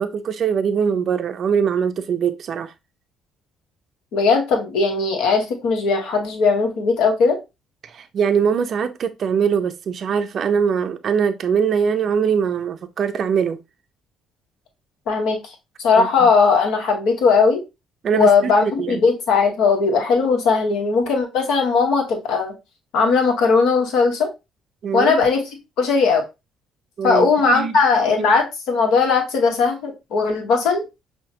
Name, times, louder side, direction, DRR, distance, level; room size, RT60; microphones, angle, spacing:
voice 1, 0.0-2.7 7.8-13.6 16.0-16.3 18.0-19.0 24.8-25.1 27.0-27.8 28.2-28.3, right 7 dB, 55° right, 0.4 m, -22 dB
voice 2, 4.1-7.4 15.1-17.6 18.1-22.5 22.9-24.3 24.9-25.4 25.8-26.2 27.0-30.8, left 4 dB, 70° left, 1.1 m, -18 dB
5.6 x 2.3 x 2.8 m
hypercardioid pair, 55°, 0 cm